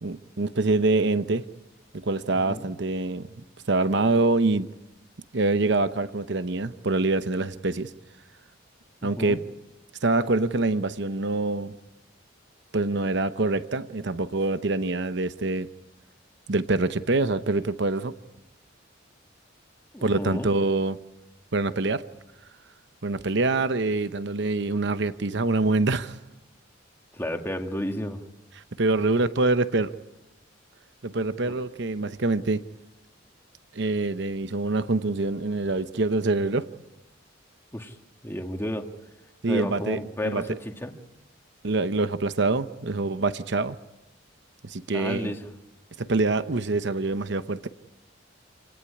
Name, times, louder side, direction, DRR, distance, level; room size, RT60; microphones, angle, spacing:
voice 1, 0.0-1.4 1.9-3.3 3.7-4.7 5.3-7.9 9.0-9.4 10.0-11.7 12.7-15.7 16.5-18.1 20.0-21.0 21.5-22.0 23.0-26.2 28.8-29.9 31.0-32.6 33.7-36.7 39.4-40.0 40.2-40.5 41.6-43.8 44.6-45.3 46.0-47.7, right 3 dB, 60° right, 12 dB, 0.9 m, -25 dB
voice 2, 19.9-20.5 27.1-28.2 37.7-38.0 38.2-38.9 39.5-40.9 44.9-45.5, equal, 10° left, 4 dB, 2.0 m, -32 dB
27.5 x 18.5 x 9.8 m, 0.96 s
head